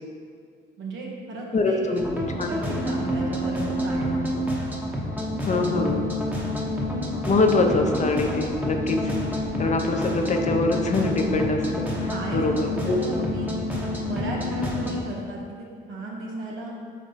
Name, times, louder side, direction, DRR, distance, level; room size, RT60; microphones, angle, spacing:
voice 1, 0.8-1.8 2.2-4.2 9.4-9.5 11.9-13.5 14.0-16.7, right 2 dB, 80° right, -2 dB, 1.3 m, -35 dB
voice 2, 1.5-2.0 2.4-2.8 5.5-6.1 7.2-9.1 9.6-11.9 12.3-13.0, left 2 dB, 35° left, 3 dB, 0.7 m, -24 dB
sound 1, 2.0-15.0, left 1 dB, 10° right, 0.9 m, -28 dB
4.3 x 4.2 x 5.6 m, 2.1 s
cardioid pair, 90°, 20 cm